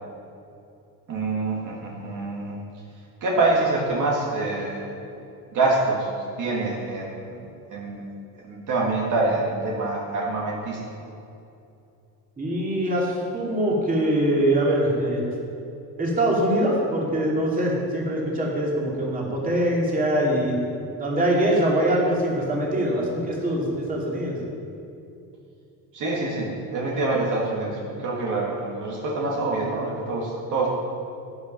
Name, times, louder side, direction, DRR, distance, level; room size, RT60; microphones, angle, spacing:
voice 1, 1.1-2.6 3.2-5.0 5.5-6.1 6.4-8.0 8.4-10.8 25.9-30.7, right 2 dB, 50° right, -3 dB, 2.0 m, -26 dB
voice 2, 12.4-15.2 16.0-20.6 21.0-24.4, right 1 dB, 20° right, -3 dB, 2.6 m, -23 dB
11.5 x 9.7 x 5.3 m, 2.7 s
cardioid pair, 135°, 38 cm